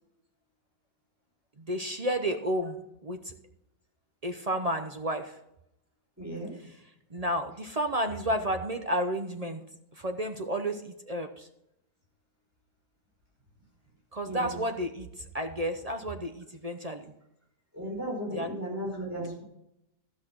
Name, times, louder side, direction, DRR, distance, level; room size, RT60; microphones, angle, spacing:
voice 1, 1.7-3.3 4.2-5.3 7.1-9.6 10.0-11.5 14.1-15.1 15.3-17.0 18.3-18.5, equal, 40° right, 5 dB, 0.5 m, -31 dB
voice 2, 6.2-6.7 14.3-14.5 17.7-19.4, equal, 10° right, -4 dB, 5.5 m, -35 dB
13.0 x 6.3 x 6.2 m, 0.80 s
omnidirectional pair, 1.7 m